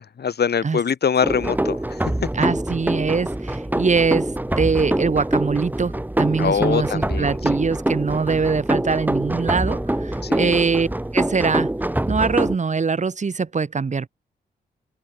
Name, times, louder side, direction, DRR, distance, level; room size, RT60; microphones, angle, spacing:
voice 1, 0.0-2.3 6.4-7.6 10.2-10.6, left 7 dB, 65° left, 5.0 m, -24 dB
sound 1, 1.2-12.6, right 1 dB, 10° right, 1.7 m, -24 dB
voice 2, 2.4-4.3 4.6-10.9 11.1-11.7 12.1-14.1, right 5 dB, 40° right, 1.4 m, -22 dB
supercardioid pair, 55°, 18 cm